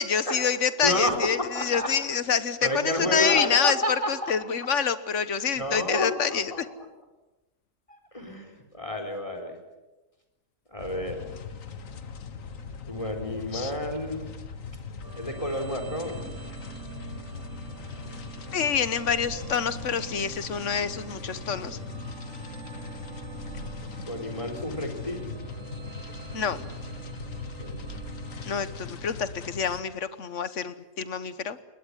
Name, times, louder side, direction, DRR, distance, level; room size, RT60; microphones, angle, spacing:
voice 1, 0.0-3.8 4.1-6.5 13.5-13.7 18.5-21.8 26.3-26.7 28.5-31.6, left 7 dB, 70° left, 14 dB, 1.5 m, -27 dB
voice 2, 0.8-1.9 2.2-4.3 4.6-4.7 5.5-6.9 7.9-9.6 10.7-11.3 12.9-14.3 15.1-16.2 24.1-25.3 27.6-27.9, left 1 dB, 25° left, 3 dB, 4.1 m, -31 dB
sound 1, 10.8-29.8, left 6 dB, 90° left, 1.8 m, -40 dB
sound 2, 15.0-29.7, right 6 dB, 70° right, 1.6 m, -43 dB
21.5 x 19.5 x 10.0 m, 1.1 s
omnidirectional pair, 1.3 m